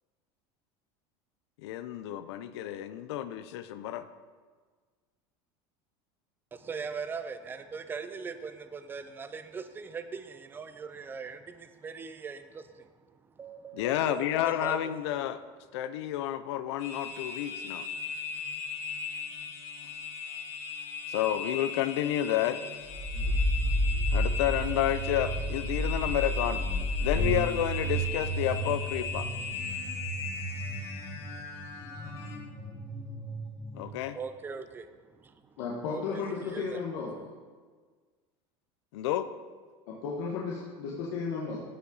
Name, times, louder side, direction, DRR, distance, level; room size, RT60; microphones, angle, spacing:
voice 1, 1.6-4.1 13.7-15.4 15.7-17.9 21.1-22.6 24.1-26.6 27.0-29.3 33.7-34.2 38.9-39.3, left 12 dB, 90° left, 13 dB, 0.6 m, -30 dB
voice 2, 6.5-14.9 33.9-35.6 35.9-36.8, right 5 dB, 15° right, 10 dB, 0.5 m, -41 dB
sound 1, 16.8-32.4, left 5 dB, 55° left, 1.7 m, -38 dB
sound 2, 22.8-33.8, equal, 10° left, 1.9 m, -32 dB
voice 3, 35.6-37.2 40.0-41.6, left 5 dB, 70° left, -4 dB, 1.5 m, -34 dB
14.0 x 5.7 x 4.0 m, 1.5 s
supercardioid pair, 150°, 14 cm